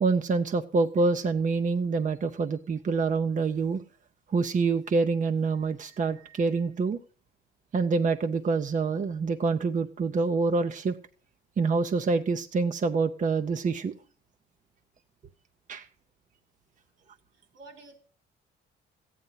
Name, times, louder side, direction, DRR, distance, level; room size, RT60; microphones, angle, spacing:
voice 1, 0.0-3.8 4.3-7.0 7.7-11.0 11.6-13.9 15.7-15.9, right 4 dB, 40° right, 8 dB, 0.7 m, -26 dB
voice 2, 17.3-18.0, right 3 dB, 85° right, 5 dB, 4.0 m, -50 dB
14.0 x 9.4 x 5.6 m, 0.41 s
cardioid pair, 90°, 20 cm